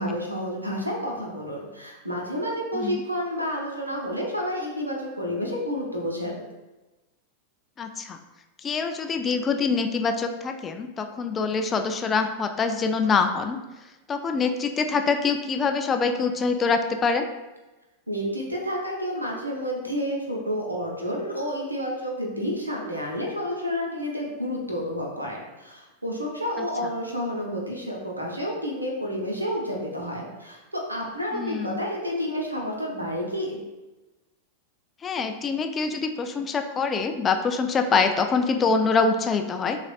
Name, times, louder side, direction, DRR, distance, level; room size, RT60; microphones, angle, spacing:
voice 1, 0.0-6.5 18.1-33.6, equal, 85° right, -2 dB, 0.8 m, -30 dB
voice 2, 7.8-8.2 8.6-13.6 14.1-17.2 26.6-26.7 31.3-31.8 35.0-39.8, left 4 dB, 20° left, 6 dB, 0.3 m, -25 dB
6.1 x 2.5 x 2.4 m, 1.1 s
figure-of-eight pair, 90°, 0 cm